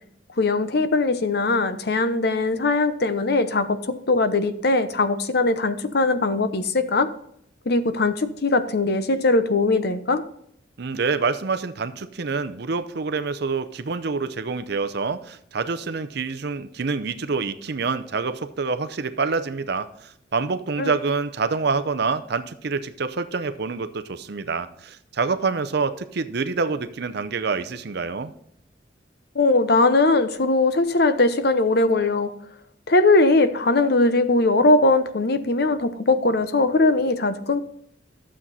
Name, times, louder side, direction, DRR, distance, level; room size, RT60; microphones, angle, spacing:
voice 1, 0.4-7.1 7.7-10.2 20.8-20.9 29.3-32.3 32.9-37.6, left 2 dB, 55° left, 11 dB, 0.8 m, -20 dB
voice 2, 10.8-28.3, right 4 dB, 55° right, 11 dB, 0.6 m, -27 dB
12.0 x 7.5 x 4.1 m, 0.69 s
head